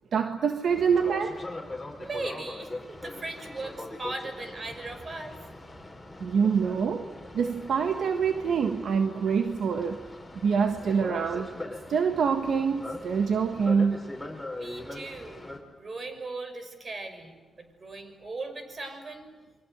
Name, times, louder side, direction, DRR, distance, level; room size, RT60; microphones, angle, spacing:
voice 1, 0.1-1.4 6.2-7.1 7.3-10.0 10.4-11.5 11.9-14.1, right 6 dB, 75° right, 6 dB, 1.5 m, -25 dB
Boat Water vehicle, 0.7-15.6, left 2 dB, 10° left, 5.9 m, -41 dB
voice 2, 2.0-5.3 14.5-15.5 15.8-19.3, right 2 dB, 40° right, 7 dB, 6.1 m, -38 dB
28.5 x 24.0 x 8.1 m, 1.3 s
cardioid pair, 75°, 0 cm